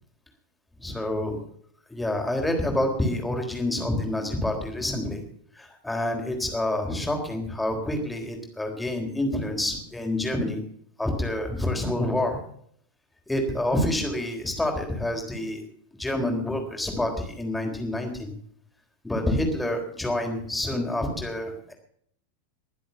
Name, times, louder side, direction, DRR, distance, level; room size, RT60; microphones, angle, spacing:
voice 1, 0.8-1.4 1.9-5.2 5.6-10.6 11.0-12.4 13.3-15.6 16.0-18.3 19.0-21.7, left 1 dB, 5° left, 3 dB, 3.8 m, -27 dB
22.0 x 7.7 x 6.9 m, 0.65 s
figure-of-eight pair, 90°, 0 cm